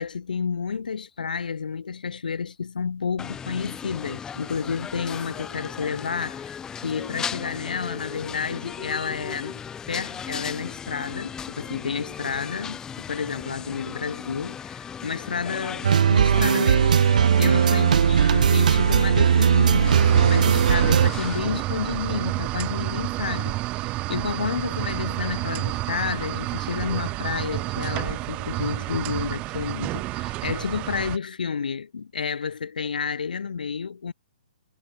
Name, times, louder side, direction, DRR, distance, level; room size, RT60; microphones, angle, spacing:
voice 1, 0.0-9.6 9.9-34.1, left 6 dB, 75° left, 6.4 m, -30 dB
sound 1, 3.2-21.4, left 7 dB, 15° left, 5.6 m, -37 dB
sound 2, 15.8-21.1, right 8 dB, 60° right, 3.3 m, -18 dB
sound 3, 19.9-31.2, right 20 dB, 25° right, 3.6 m, -30 dB
hypercardioid pair, 135°, 5 cm